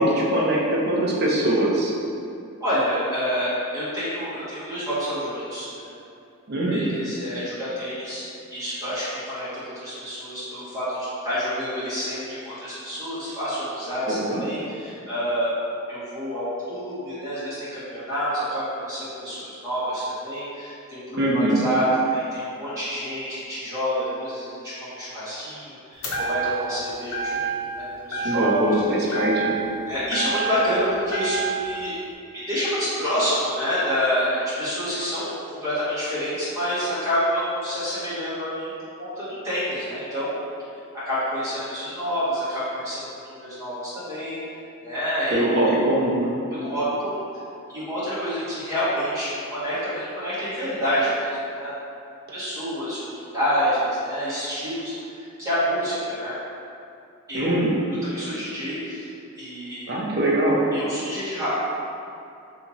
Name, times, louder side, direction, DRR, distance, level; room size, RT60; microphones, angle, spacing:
voice 1, 0.0-1.9 6.5-6.8 14.1-14.4 21.2-21.6 28.2-29.6 45.3-46.3 57.3-57.8 59.9-60.6, right 1 dB, 45° right, -4 dB, 0.5 m, -22 dB
voice 2, 2.6-5.9 6.5-8.3 8.5-9.5 9.7-15.5 15.9-24.7 25.0-28.6 29.0-29.2 29.9-31.9 32.5-35.3 35.6-38.7 39.0-40.3 40.9-43.0 43.3-44.4 44.8-45.5 46.5-47.2 47.7-51.7 52.3-56.3 57.3-57.7 58.1-59.1 59.4-59.9 60.7-61.5, equal, 15° right, -13 dB, 1.2 m, -28 dB
sound 1, 26.0-26.8 27.1-27.8 28.1-28.8 29.1-30.7 31.1-31.7, right 4 dB, 85° left, 0.6 m, -28 dB
2.9 x 2.7 x 3.8 m, 2.6 s
head